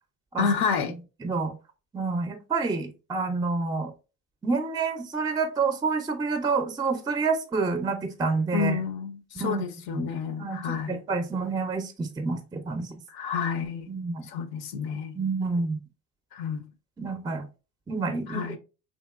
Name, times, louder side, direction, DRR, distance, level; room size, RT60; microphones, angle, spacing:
voice 1, 0.4-0.9 8.5-11.0 13.1-13.9 14.2-15.2 16.3-16.7 18.3-18.6, left 6 dB, 75° left, 0.6 m, -29 dB
voice 2, 1.2-1.5 1.9-3.9 4.4-8.8 9.4-9.6 9.9-10.1 10.4-13.0 13.9-14.3 15.1-15.8 17.0-17.5 17.9-18.6, right 4 dB, 10° right, 0.4 m, -28 dB
2.8 x 2.8 x 2.3 m
supercardioid pair, 90°, 35 cm